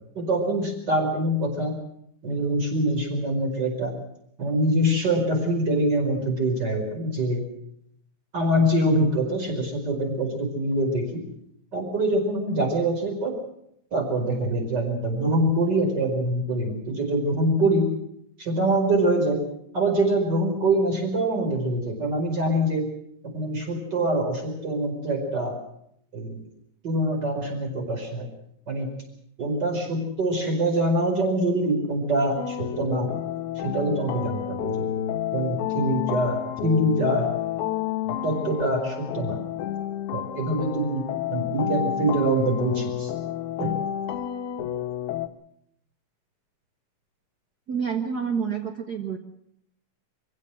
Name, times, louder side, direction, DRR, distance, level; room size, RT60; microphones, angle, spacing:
voice 1, 0.2-1.8 2.2-3.9 4.4-7.4 8.3-11.2 11.7-13.3 13.9-17.9 18.4-19.4 19.7-22.9 23.2-25.5 26.1-26.4 26.8-28.3 28.7-28.9 29.4-33.1 33.6-34.9 35.3-37.3 38.1-39.4 40.1-41.0 41.3-43.1 43.6-43.8, right 1 dB, 30° right, 2 dB, 5.4 m, -24 dB
sound 1, 32.4-45.3, left 10 dB, 75° left, 2.5 m, -30 dB
voice 2, 47.7-49.2, right 6 dB, 50° right, 6 dB, 1.2 m, -28 dB
25.0 x 15.5 x 7.7 m, 0.74 s
omnidirectional pair, 3.6 m